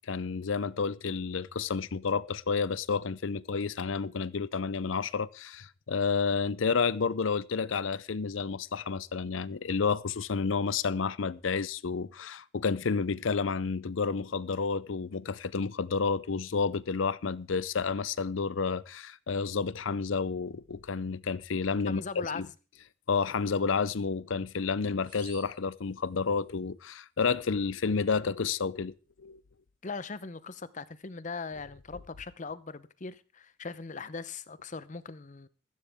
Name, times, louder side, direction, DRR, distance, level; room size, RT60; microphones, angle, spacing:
voice 1, 0.1-22.0 22.3-22.5 23.1-29.4, left 5 dB, 75° left, 0.6 m, -30 dB
voice 2, 21.9-22.5 29.8-35.5, left 4 dB, 40° left, 0.8 m, -40 dB
sound 1, 25.0-26.6, right 5 dB, 25° right, 2.2 m, -55 dB
14.5 x 14.0 x 3.6 m
head